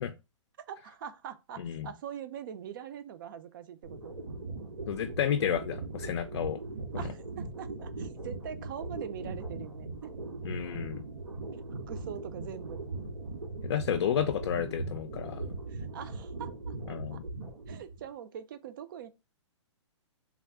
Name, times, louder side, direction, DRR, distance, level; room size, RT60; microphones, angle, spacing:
voice 1, 0.6-4.2 7.0-10.1 11.9-12.8 15.7-17.2 17.7-19.1, right 9 dB, 45° right, 0.5 m, -43 dB
voice 2, 1.6-1.9 4.9-6.6 10.4-11.0 13.6-15.4 16.9-17.2, left 9 dB, 55° left, 0.4 m, -31 dB
sound 1, 3.8-18.1, right 3 dB, 90° right, 2.2 m, -39 dB
3.4 x 2.5 x 3.4 m
hypercardioid pair, 160°, 16 cm